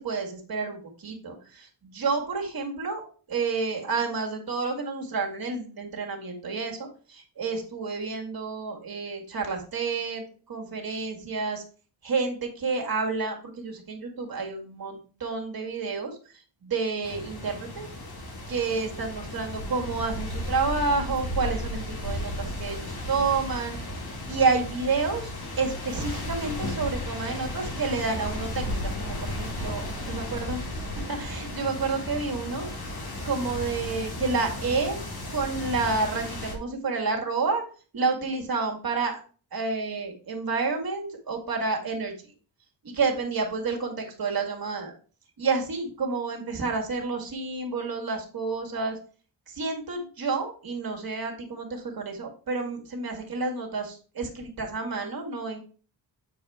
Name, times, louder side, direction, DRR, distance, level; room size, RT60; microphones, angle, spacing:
voice 1, 0.0-11.6 12.0-17.9 18.5-23.8 24.3-30.6 31.1-32.7 33.0-35.0 35.3-37.6 37.9-39.2 39.5-42.3 42.8-44.9 45.4-49.0 49.5-55.6, right 4 dB, 55° right, 2 dB, 2.1 m, -30 dB
sound 1, 17.0-36.6, left 1 dB, 60° left, 2.0 m, -34 dB
8.3 x 4.7 x 3.5 m, 0.39 s
wide cardioid pair, 110°, 42 cm